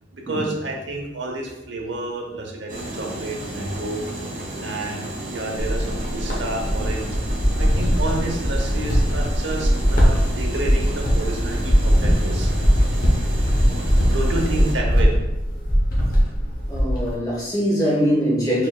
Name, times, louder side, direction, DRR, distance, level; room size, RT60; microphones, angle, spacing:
voice 1, 0.1-4.0 4.6-7.2 7.6-12.5 14.0-15.1, right 2 dB, 80° right, 1 dB, 0.8 m, -30 dB
sound 1, 2.7-14.7, right 1 dB, 45° right, 0.9 m, -33 dB
sound 2, 5.6-17.2, equal, 45° left, 0.9 m, -20 dB
voice 2, 16.7-18.7, equal, 20° left, -6 dB, 1.4 m, -22 dB
4.2 x 3.9 x 2.3 m, 0.96 s
head